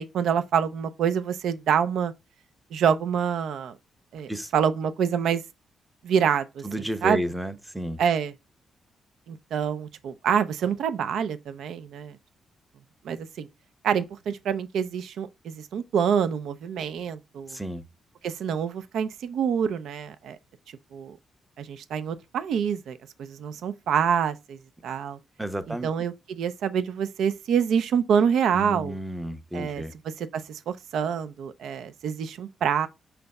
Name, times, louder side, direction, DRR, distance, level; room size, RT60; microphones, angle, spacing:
voice 1, 0.0-2.1 2.7-3.8 4.1-5.4 6.0-7.2 8.0-8.3 9.3-12.2 13.0-13.5 13.8-17.6 18.2-20.4 20.9-21.2 21.6-25.2 25.7-29.0 29.5-32.9, right 7 dB, 75° right, 0.6 m, -26 dB
voice 2, 6.6-8.0 17.5-17.8 25.4-25.9 28.5-29.9, equal, 5° right, 0.7 m, -32 dB
5.9 x 3.3 x 5.3 m
cardioid pair, 140°, 0 cm